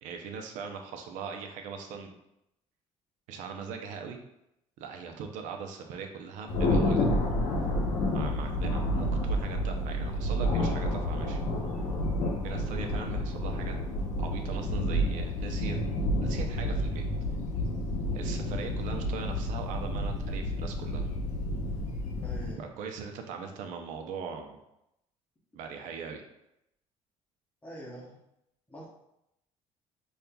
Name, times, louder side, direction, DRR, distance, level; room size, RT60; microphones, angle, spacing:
voice 1, 0.0-2.1 3.3-4.2 4.8-7.0 8.1-11.4 12.4-13.7 14.2-15.8 16.2-17.0 18.1-21.1 22.6-24.6 25.5-26.2, right 6 dB, 85° right, 4 dB, 0.5 m, -40 dB
Thunder, 6.5-22.5, left 1 dB, 75° left, 0.7 m, -30 dB
voice 2, 22.2-22.7 27.6-28.2 28.7-28.9, equal, 10° left, -4 dB, 0.7 m, -44 dB
5.3 x 2.4 x 2.2 m, 0.83 s
cardioid pair, 150°, 13 cm